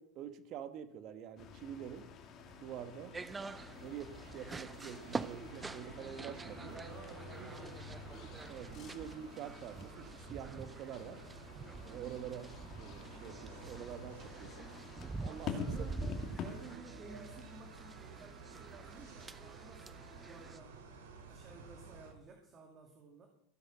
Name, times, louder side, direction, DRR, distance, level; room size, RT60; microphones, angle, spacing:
voice 1, 0.0-2.1 2.6-3.2 3.8-6.8 7.4-7.5 8.5-11.2 11.8-14.7 15.2-15.5, right 9 dB, 50° right, 10 dB, 1.5 m, -46 dB
sound 1, 1.4-16.8, left 6 dB, 40° left, 2.4 m, -49 dB
sound 2, 2.4-22.1, right 5 dB, 85° right, 5.5 m, -53 dB
sound 3, 3.1-20.6, right 4 dB, 15° right, 0.6 m, -47 dB
voice 2, 6.8-7.9 15.2-16.1 16.3-20.8 21.3-23.3, right 4 dB, 30° right, 2 dB, 2.4 m, -54 dB
16.0 x 9.8 x 6.2 m, 0.75 s
supercardioid pair, 115°, 0 cm